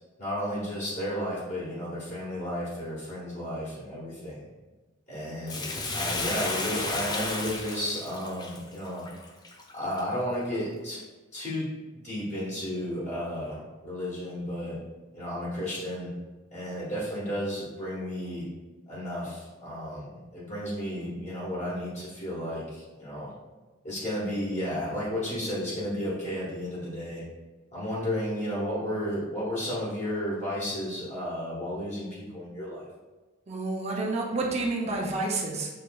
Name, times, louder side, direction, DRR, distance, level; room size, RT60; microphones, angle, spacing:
voice 1, 0.2-4.5 5.1-9.1 9.7-11.0 11.3-11.7 12.0-14.8 15.1-16.1 16.5-18.5 18.9-23.4 23.8-27.2 27.7-32.8, equal, 40° left, -8 dB, 1.2 m, -33 dB
Bathtub (filling or washing), 5.5-10.0 10.5-10.6, left 2 dB, 20° left, 0.4 m, -33 dB
voice 2, 33.5-35.7, right 2 dB, 35° right, -1 dB, 0.6 m, -29 dB
6.5 x 3.2 x 2.3 m, 1.2 s
head